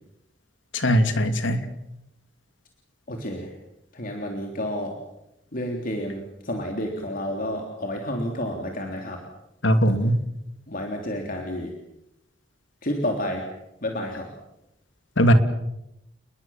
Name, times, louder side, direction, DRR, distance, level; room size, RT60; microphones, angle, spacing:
voice 1, 0.7-1.6 9.6-10.2 15.2-15.3, equal, 85° left, 8 dB, 2.8 m, -20 dB
voice 2, 3.1-3.5 3.9-5.0 5.5-9.2 10.7-11.7 12.8-13.5 13.8-14.3, left 1 dB, 50° left, 2 dB, 3.5 m, -30 dB
30.0 x 21.0 x 7.4 m, 0.87 s
head